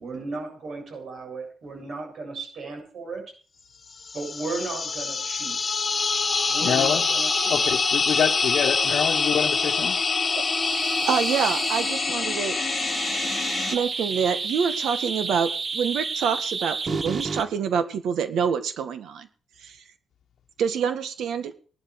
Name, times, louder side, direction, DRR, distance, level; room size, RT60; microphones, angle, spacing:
voice 1, 0.0-3.2 4.1-5.6 6.5-7.6, right 3 dB, 60° right, 3 dB, 7.2 m, -35 dB
sound 1, 4.0-13.8, left 4 dB, 35° left, 1.6 m, -25 dB
sound 2, 5.7-17.4, right 4 dB, 35° right, 1.1 m, -32 dB
voice 2, 6.6-7.0 7.5-10.0, left 8 dB, 70° left, 2 dB, 1.1 m, -26 dB
voice 3, 11.1-12.6 13.7-19.3 19.6-19.8 20.6-21.5, right 7 dB, 80° right, 10 dB, 1.6 m, -26 dB
17.0 x 11.5 x 4.8 m, 0.41 s
cardioid pair, 110°, 0 cm